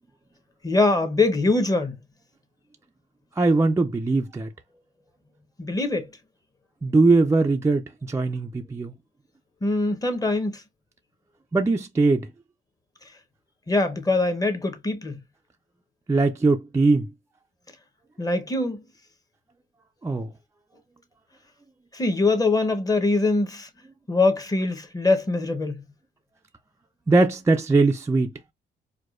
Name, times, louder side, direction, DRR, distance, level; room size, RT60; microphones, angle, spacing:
voice 1, 0.6-2.0 5.6-6.1 9.6-10.6 13.7-15.2 18.2-18.8 21.9-23.7 24.1-25.8, left 2 dB, 20° left, 0.8 m, -23 dB
voice 2, 3.4-4.5 6.8-8.9 11.5-12.3 16.1-17.1 20.0-20.3 27.1-28.3, right 3 dB, 15° right, 0.4 m, -21 dB
4.7 x 2.2 x 2.4 m
cardioid pair, 90°, 20 cm